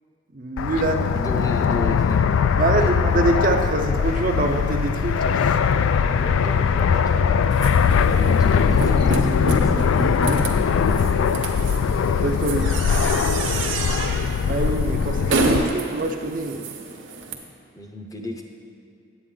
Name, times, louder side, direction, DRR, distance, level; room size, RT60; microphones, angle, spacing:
voice 1, 0.3-1.1 2.6-5.6 12.2-12.7 14.5-16.7, right 2 dB, 40° right, 4 dB, 0.5 m, -24 dB
Fixed-wing aircraft airplane, 0.6-15.7, left 6 dB, 80° left, 0.3 m, -21 dB
voice 2, 1.1-2.2 2.7-3.0 6.0-7.4 8.1-10.0 13.9-14.1 17.7-18.4, left 1 dB, 15° left, 2 dB, 0.6 m, -34 dB
sound 1, 7.5-17.3, right 2 dB, 75° right, 0.9 m, -28 dB
9.8 x 8.2 x 3.8 m, 2.4 s
head